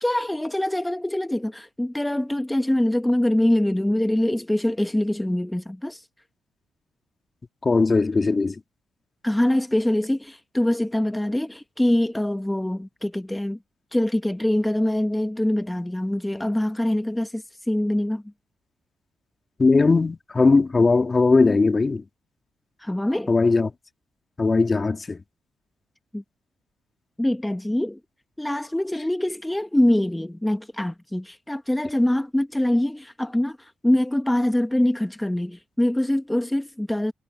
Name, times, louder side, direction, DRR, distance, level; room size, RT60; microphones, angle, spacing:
voice 1, 0.0-6.0 9.2-13.6 13.9-18.2 22.8-23.3 26.1-26.2 27.2-28.0 28.4-37.1, left 1 dB, 10° left, 1.6 m, -24 dB
voice 2, 7.6-8.5 19.6-22.0 23.3-23.7 24.4-25.2, left 3 dB, 35° left, 2.2 m, -19 dB
supercardioid pair, 50°, 0 cm